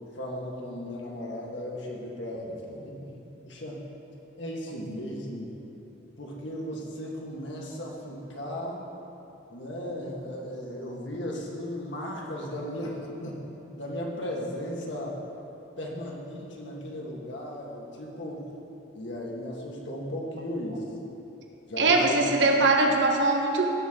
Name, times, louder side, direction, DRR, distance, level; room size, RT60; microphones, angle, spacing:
voice 1, 0.1-3.2 3.4-3.8 4.4-5.5 6.2-8.8 9.5-13.4 13.8-15.2 15.8-18.4 18.9-20.9 21.7-22.5, equal, 85° left, -2 dB, 1.6 m, -36 dB
voice 2, 21.8-23.7, right 2 dB, 85° right, 2 dB, 1.1 m, -21 dB
17.0 x 6.2 x 3.8 m, 3.0 s
head